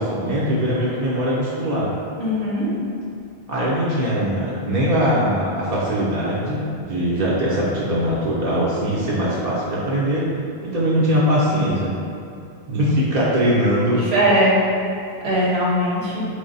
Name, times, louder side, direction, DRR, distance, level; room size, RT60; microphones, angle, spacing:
voice 1, 0.0-1.9 3.5-10.3 10.6-11.9 12.7-14.0, equal, 45° right, -7 dB, 0.7 m, -21 dB
voice 2, 2.2-2.7 13.9-14.6 15.2-16.3, equal, 75° right, -6 dB, 1.2 m, -20 dB
4.8 x 2.1 x 3.9 m, 2.4 s
omnidirectional pair, 1.1 m